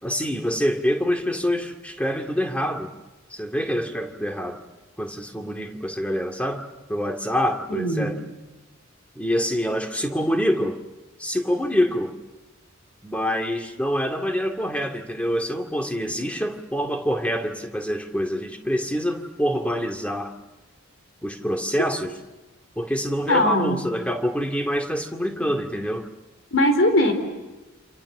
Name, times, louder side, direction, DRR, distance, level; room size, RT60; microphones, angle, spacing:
voice 1, 0.0-2.9 3.3-4.6 5.0-8.2 9.2-10.8 11.2-12.1 13.0-20.3 21.2-22.1 22.8-26.1, equal, 5° left, 4 dB, 2.1 m, -26 dB
voice 2, 7.7-8.1 23.3-23.8 26.5-27.1, left 1 dB, 70° left, 6 dB, 4.4 m, -20 dB
28.5 x 27.5 x 7.3 m, 1.1 s
head